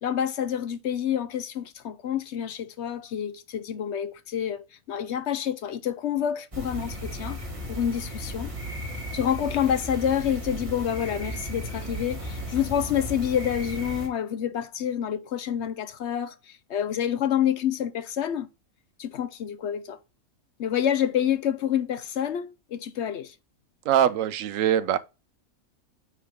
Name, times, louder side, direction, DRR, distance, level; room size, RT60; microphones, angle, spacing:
voice 1, 0.0-7.4 7.7-8.5 9.1-18.5 19.0-20.0 20.6-23.3, left 9 dB, 60° left, 0.9 m, -28 dB
sound 1, 6.5-14.1, equal, 25° right, 1.8 m, -35 dB
voice 2, 23.9-25.0, right 10 dB, 75° right, 1.0 m, -22 dB
9.2 x 3.6 x 3.6 m
omnidirectional pair, 1.4 m